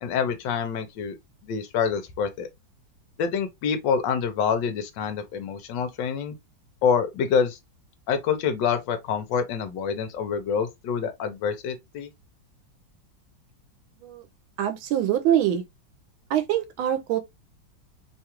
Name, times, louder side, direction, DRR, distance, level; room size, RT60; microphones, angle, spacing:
voice 1, 0.0-1.2 1.4-2.5 3.2-6.3 6.8-7.6 8.1-12.1, left 6 dB, 70° left, 1.3 m, -26 dB
voice 2, 14.6-15.6 16.3-17.2, right 11 dB, 90° right, 1.4 m, -24 dB
3.4 x 2.3 x 2.8 m
omnidirectional pair, 2.2 m